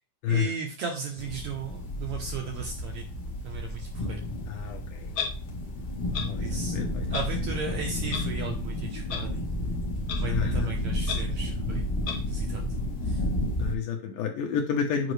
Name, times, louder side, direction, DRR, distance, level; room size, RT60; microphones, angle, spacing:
voice 1, 0.3-3.1 3.4-4.2 6.4-6.8 7.1-9.5 10.1-11.8 12.2-12.7 13.0-13.2, right 5 dB, 70° right, 1 dB, 1.8 m, -36 dB
sound 1, 1.2-13.8, left 1 dB, 55° left, 1.3 m, -31 dB
voice 2, 4.5-5.1 6.3-7.1 10.2-10.7 13.6-15.1, left 7 dB, 70° left, 2 dB, 2.4 m, -30 dB
Clock, 5.1-5.3 6.1-6.3 7.1-7.2 8.1-8.2 9.1-9.2 10.1-10.2 11.1-11.2 12.1-12.2, left 7 dB, 90° left, 1.1 m, -31 dB
7.8 x 5.1 x 3.2 m, 0.34 s
omnidirectional pair, 4.2 m